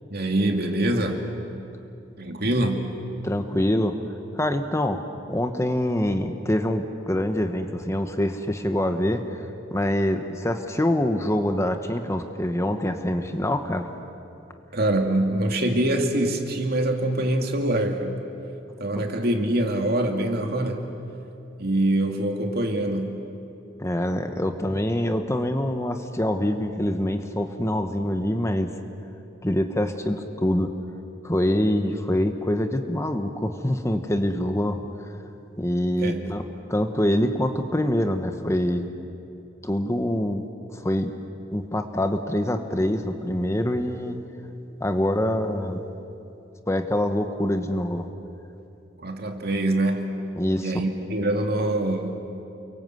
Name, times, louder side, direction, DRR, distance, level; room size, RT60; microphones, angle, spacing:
voice 1, 0.1-1.2 2.2-2.9 14.7-18.2 18.8-20.9 21.6-23.2 36.0-36.3 49.0-50.1 50.6-52.2, right 1 dB, 55° right, 3 dB, 2.5 m, -24 dB
voice 2, 3.2-4.0 4.3-5.0 5.3-13.9 23.8-28.7 29.4-30.7 31.2-34.8 35.6-36.4 36.7-38.9 39.6-40.4 40.7-41.1 41.5-44.2 44.8-45.8 46.7-48.1 50.4-50.7, left 1 dB, 15° left, 7 dB, 1.2 m, -25 dB
29.5 x 23.5 x 7.9 m, 2.8 s
head